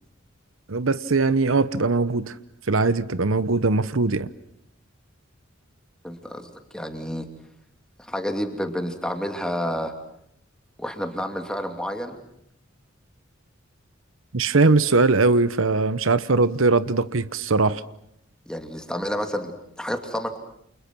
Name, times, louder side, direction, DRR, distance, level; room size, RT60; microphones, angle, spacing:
voice 1, 0.7-2.3 2.7-4.3 14.3-17.8, right 3 dB, 85° right, 1.0 m, -20 dB
voice 2, 6.0-7.3 8.0-9.9 10.8-12.2 18.5-20.4, equal, 5° left, 2.7 m, -30 dB
30.0 x 28.5 x 6.2 m
head